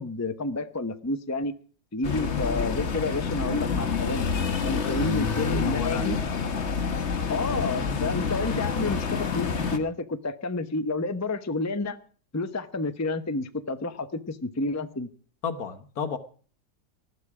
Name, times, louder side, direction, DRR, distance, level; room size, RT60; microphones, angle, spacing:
voice 1, 0.0-1.5 1.9-4.3 4.6-6.2 7.2-12.0 12.3-15.1, left 2 dB, 15° left, 9 dB, 0.7 m, -30 dB
sound 1, 2.0-9.8, left 5 dB, 45° left, 1.5 m, -28 dB
voice 2, 4.7-5.1 5.4-6.4 15.4-16.2, left 6 dB, 65° left, 9 dB, 1.7 m, -34 dB
19.5 x 13.0 x 4.9 m, 0.44 s
omnidirectional pair, 1.8 m